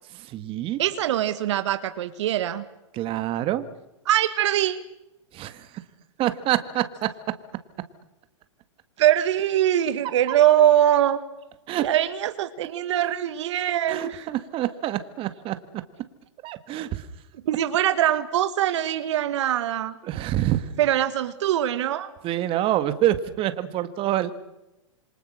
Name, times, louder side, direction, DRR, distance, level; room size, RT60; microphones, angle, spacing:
voice 1, 0.1-0.8 2.9-3.7 5.3-5.7 6.2-7.1 10.3-10.4 11.7-11.9 13.9-15.6 16.4-17.1 20.0-20.7 22.2-24.3, right 13 dB, 35° right, 1.8 m, -26 dB
voice 2, 0.8-2.6 4.1-4.8 9.0-11.2 11.8-14.3 17.4-19.9 20.8-22.1, right 11 dB, 65° right, 1.4 m, -22 dB
27.5 x 24.5 x 6.5 m
hypercardioid pair, 115°, 16 cm